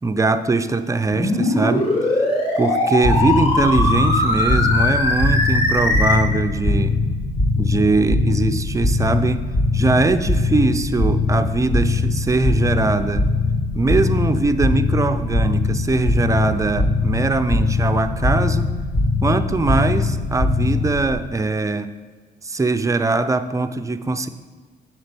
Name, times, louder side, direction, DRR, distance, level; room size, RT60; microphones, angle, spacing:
voice 1, 0.0-1.9 2.6-7.0 7.6-9.4 9.7-13.3 13.7-18.7 19.2-21.9 22.4-24.3, right 3 dB, 15° right, 10 dB, 0.5 m, -21 dB
sound 1, 1.1-6.1, left 1 dB, 35° left, 2.9 m, -20 dB
sound 2, 3.0-21.1, left 3 dB, 55° left, 1.8 m, -21 dB
7.8 x 6.6 x 5.3 m, 1.4 s
cardioid pair, 90°, 20 cm